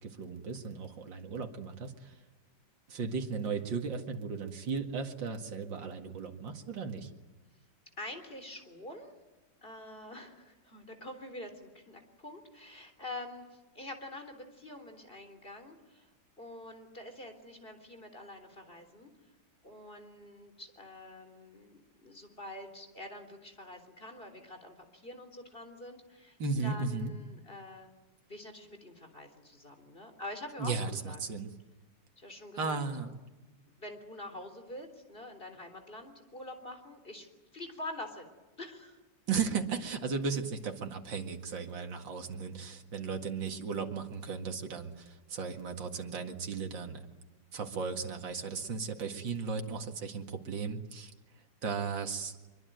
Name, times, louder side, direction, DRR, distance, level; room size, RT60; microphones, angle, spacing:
voice 1, 0.0-2.2 2.9-7.1 26.4-27.1 30.6-31.5 32.6-33.1 39.3-47.1 47.5-51.1 51.6-52.4, right 5 dB, 80° right, 4 dB, 2.8 m, -36 dB
voice 2, 8.0-9.2 9.6-16.1 16.4-19.1 19.6-27.9 28.3-31.2 32.2-32.8 33.8-37.3 37.5-38.3 38.6-39.0, left 1 dB, 30° left, 6 dB, 3.8 m, -46 dB
24.5 x 24.0 x 9.3 m, 1.2 s
omnidirectional pair, 2.0 m